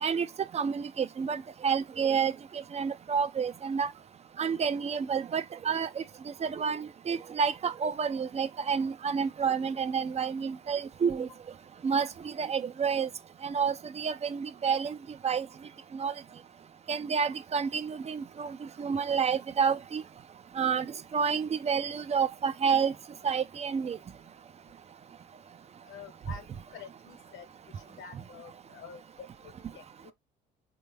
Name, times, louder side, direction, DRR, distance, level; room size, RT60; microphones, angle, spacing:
voice 1, 0.5-3.9 4.4-6.0 6.4-11.3 11.8-13.1 13.4-15.0 15.2-15.5 15.9-16.1 16.9-20.0 20.6-20.9 21.1-22.9 23.2-24.0, right 6 dB, 35° right, 0.4 m, -29 dB
voice 2, 25.9-27.5 27.8-30.1, left 7 dB, 80° left, 1.0 m, -48 dB
3.3 x 2.3 x 3.2 m
cardioid pair, 90°, 20 cm